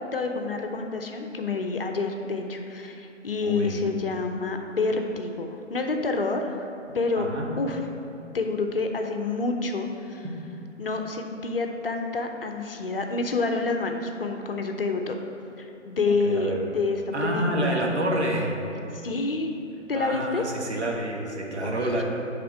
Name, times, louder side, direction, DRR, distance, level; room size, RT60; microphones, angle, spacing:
voice 1, 0.0-6.7 6.9-7.3 7.6-7.8 8.3-10.2 10.8-15.2 15.6-17.8 18.9-19.6 19.9-20.5 21.6-22.0, left 3 dB, 50° left, 4 dB, 0.6 m, -28 dB
voice 2, 3.4-3.8 7.2-7.6 16.2-16.7 17.1-18.5 19.9-22.0, right 1 dB, 60° right, -1 dB, 1.3 m, -28 dB
9.3 x 3.6 x 4.6 m, 2.7 s
figure-of-eight pair, 145°, 37 cm